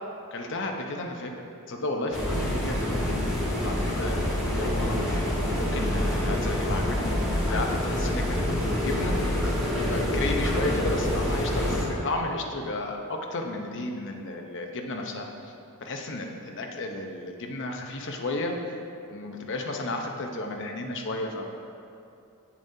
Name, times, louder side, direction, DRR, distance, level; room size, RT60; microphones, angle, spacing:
voice 1, 0.3-1.3 1.7-5.0 5.5-9.4 9.7-15.5 15.8-18.5 19.1-21.4, left 2 dB, 55° left, 2 dB, 0.7 m, -33 dB
sound 1, 2.1-11.8, left 1 dB, 5° right, 1.7 m, -26 dB
8.2 x 7.1 x 2.7 m, 2.6 s
head